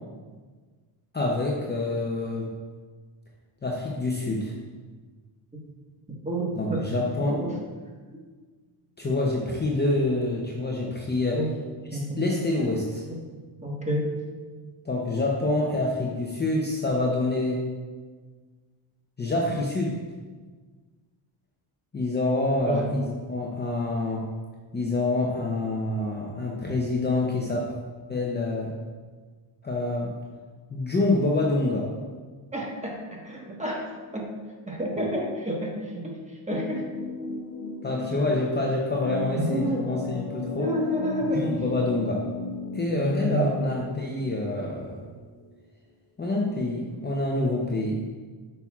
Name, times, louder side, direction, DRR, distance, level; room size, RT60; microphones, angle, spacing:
voice 1, 1.1-2.5 3.6-4.5 6.5-7.4 9.0-11.4 12.2-13.0 14.8-17.6 19.2-19.9 21.9-24.3 24.7-27.7 28.1-28.7 29.6-30.1 30.7-31.9 37.8-40.7 41.3-42.2 42.7-45.0 46.2-48.0, left 2 dB, 20° left, -3 dB, 0.7 m, -26 dB
voice 2, 6.2-6.9 7.3-7.6 11.3-11.5 11.9-12.2 13.1-13.2 13.6-14.1 22.6-22.9 32.5-34.3 34.7-36.8 39.4-39.9 40.2-41.4 43.0-43.5, equal, 15° right, -2 dB, 1.3 m, -30 dB
sound 1, 36.5-45.4, left 4 dB, 70° left, 1.0 m, -35 dB
8.9 x 5.6 x 2.4 m, 1.5 s
cardioid pair, 110°, 50 cm